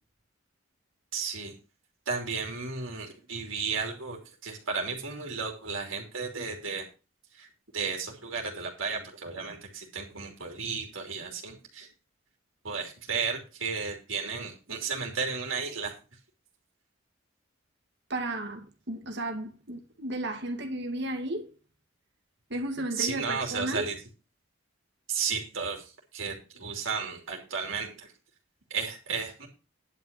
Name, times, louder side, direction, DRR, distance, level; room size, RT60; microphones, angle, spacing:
voice 1, 1.1-1.6 2.1-6.9 7.4-7.5 7.7-11.9 12.6-16.0 22.9-23.9 25.1-28.1 28.7-29.5, right 5 dB, 85° right, 3.2 m, -33 dB
voice 2, 18.1-21.5 22.5-23.9, right 1 dB, 60° right, 2.3 m, -33 dB
11.0 x 5.5 x 6.8 m
head